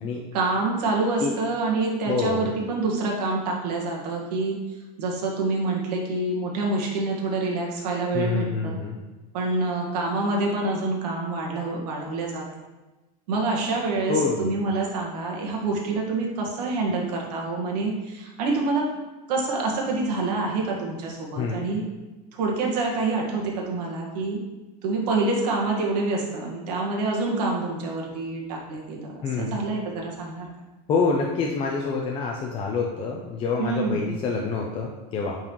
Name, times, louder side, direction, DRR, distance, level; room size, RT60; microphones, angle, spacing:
voice 1, 0.3-4.6 5.0-8.8 9.3-12.4 13.3-18.8 19.3-21.8 22.3-24.4 24.8-30.5 33.6-34.0, right 3 dB, 80° right, -1 dB, 1.7 m, -27 dB
voice 2, 2.1-2.5 8.1-9.0 14.1-14.5 21.4-21.7 29.2-29.6 30.9-35.4, left 4 dB, 25° left, -1 dB, 0.6 m, -26 dB
8.7 x 4.0 x 3.1 m, 1.1 s
supercardioid pair, 145°, 20 cm